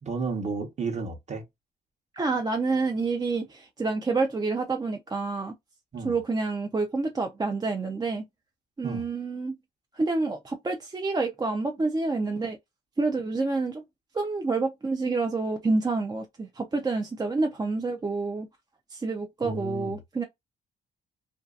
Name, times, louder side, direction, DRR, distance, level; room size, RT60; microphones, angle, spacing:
voice 1, 0.0-1.4 5.9-6.2 8.8-9.1 19.4-19.9, right 4 dB, 35° right, 0.9 m, -32 dB
voice 2, 2.1-5.5 6.0-8.2 8.8-9.5 9.9-12.6 13.0-13.8 14.1-18.5 18.9-20.2, right 3 dB, 20° right, 0.4 m, -28 dB
2.6 x 2.3 x 2.3 m
cardioid pair, 90°, 20 cm